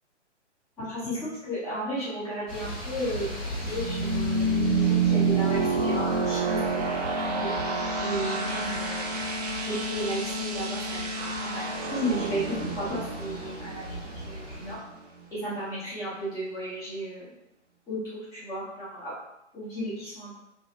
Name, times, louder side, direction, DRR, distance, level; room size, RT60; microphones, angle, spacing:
voice 1, 0.8-7.5 8.0-9.1 9.7-14.0 14.2-14.8 15.3-17.3 17.9-19.1 19.5-20.4, right 1 dB, 10° left, -12 dB, 1.0 m, -34 dB
sound 1, 2.5-14.7, left 1 dB, 25° left, 1.3 m, -39 dB
sound 2, 2.6-15.2, right 3 dB, 35° right, 0.5 m, -29 dB
3.1 x 2.4 x 2.9 m, 0.83 s
figure-of-eight pair, 135°, 36 cm